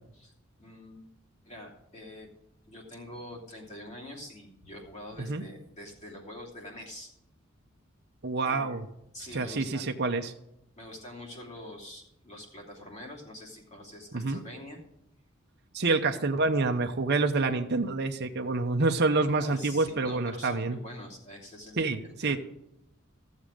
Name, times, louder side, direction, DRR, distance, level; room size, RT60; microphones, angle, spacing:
voice 1, 0.6-1.1 1.4-2.3 2.7-7.1 8.4-8.8 9.1-9.8 10.8-14.8 19.4-22.4, left 1 dB, 35° left, -2 dB, 3.0 m, -45 dB
voice 2, 8.2-8.9 9.3-10.3 14.1-14.4 15.7-20.8 21.8-22.4, right 3 dB, 55° right, 4 dB, 0.8 m, -27 dB
15.0 x 7.3 x 5.1 m, 0.82 s
head